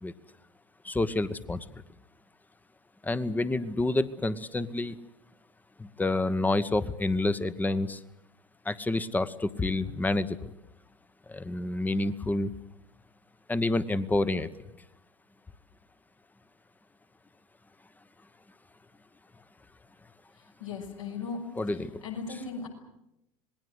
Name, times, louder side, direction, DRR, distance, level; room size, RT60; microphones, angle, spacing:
voice 1, 0.8-1.7 3.0-5.0 5.8-8.0 8.6-10.5 11.3-12.5 13.5-14.5 21.6-22.0 22.3-22.4, left 2 dB, 10° left, 15 dB, 1.2 m, -28 dB
voice 2, 20.6-21.4 22.0-22.7, left 5 dB, 75° left, 1 dB, 6.2 m, -36 dB
26.5 x 20.5 x 8.0 m, 0.82 s
figure-of-eight pair, 80°, 17 cm